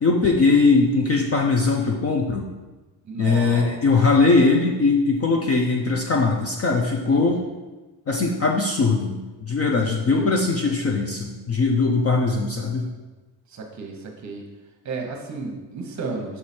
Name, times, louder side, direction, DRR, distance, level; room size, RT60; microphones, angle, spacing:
voice 1, 0.0-2.5 3.2-7.4 8.1-12.9, left 3 dB, 35° left, 1 dB, 0.4 m, -20 dB
voice 2, 3.0-3.8 7.1-7.4 9.8-10.3 10.6-10.7 13.5-14.4 14.8-16.4, right 3 dB, 35° right, 2 dB, 0.9 m, -33 dB
5.8 x 4.7 x 4.2 m, 1.2 s
cardioid pair, 175°, 47 cm